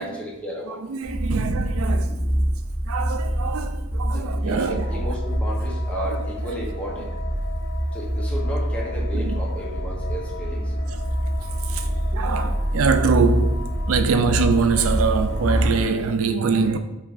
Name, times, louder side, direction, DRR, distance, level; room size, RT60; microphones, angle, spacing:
voice 1, 0.0-0.8 1.3-1.4 2.1-2.5 4.1-7.1 7.9-11.1 11.8-12.1, equal, 5° left, 0.8 m, -34 dB
voice 2, 0.7-2.2 2.8-5.1 6.0-6.2 7.0-7.1 9.1-9.4 10.9-11.0 11.4-16.8, right 5 dB, 85° right, 0.4 m, -24 dB
sound 1, 1.0-15.8, equal, 90° left, 1.0 m, -25 dB
sound 2, 4.5-15.6, left 5 dB, 55° left, 0.3 m, -40 dB
5.4 x 3.2 x 2.5 m
head